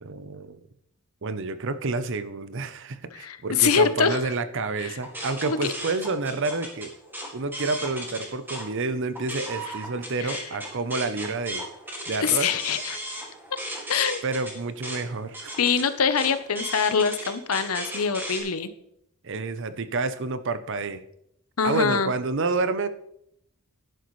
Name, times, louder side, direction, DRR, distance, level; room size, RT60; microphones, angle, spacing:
voice 1, 0.0-0.6 1.2-6.9 7.3-11.7 12.1-12.5 14.2-15.6 19.2-21.0 21.6-22.9, right 3 dB, 55° right, 12 dB, 0.7 m, -29 dB
voice 2, 3.1-4.3 4.8-5.0 5.4-5.6 10.2-10.4 11.5-11.6 12.2-13.0 13.9-14.2 15.6-18.7 21.6-22.1, left 6 dB, 75° left, 12 dB, 0.8 m, -24 dB
sound 1, 5.0-8.7 9.0-18.4, right 1 dB, 10° right, 2.2 m, -36 dB
11.0 x 11.0 x 3.2 m, 0.75 s
head